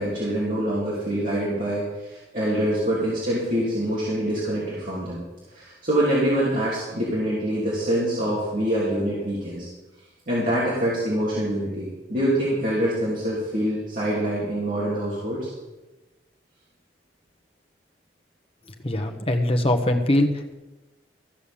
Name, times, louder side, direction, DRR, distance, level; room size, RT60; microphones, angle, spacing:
voice 1, 0.0-5.2 5.5-9.7 10.3-15.5, right 1 dB, 45° right, -8 dB, 3.3 m, -25 dB
voice 2, 18.8-20.5, left 1 dB, 30° left, 5 dB, 1.1 m, -22 dB
14.5 x 6.9 x 7.1 m, 1.1 s
head